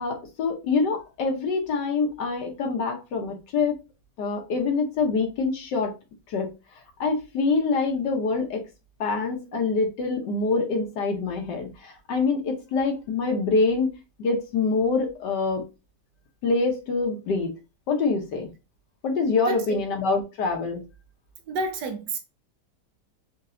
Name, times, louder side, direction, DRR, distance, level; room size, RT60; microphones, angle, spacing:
voice 1, 0.0-3.8 4.2-5.9 6.3-6.5 7.0-8.6 9.0-13.9 14.2-15.6 16.4-17.5 17.9-18.5 19.0-20.8, left 4 dB, 75° left, 1.5 m, -25 dB
voice 2, 19.5-19.8 21.5-22.2, right 3 dB, 75° right, 1.3 m, -30 dB
4.4 x 2.8 x 2.5 m
omnidirectional pair, 1.9 m